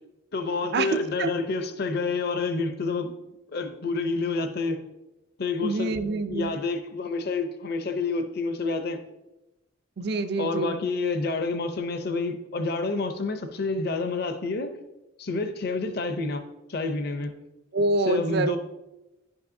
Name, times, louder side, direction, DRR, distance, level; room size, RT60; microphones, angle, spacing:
voice 1, 0.3-3.1 3.5-4.8 5.4-6.0 6.3-9.0 10.4-14.7 15.2-17.4 18.1-18.6, left 3 dB, 50° left, 8 dB, 0.6 m, -28 dB
voice 2, 5.6-6.5 10.0-10.8 17.7-18.6, right 2 dB, 55° right, 10 dB, 0.4 m, -26 dB
10.0 x 5.4 x 2.7 m, 0.98 s
head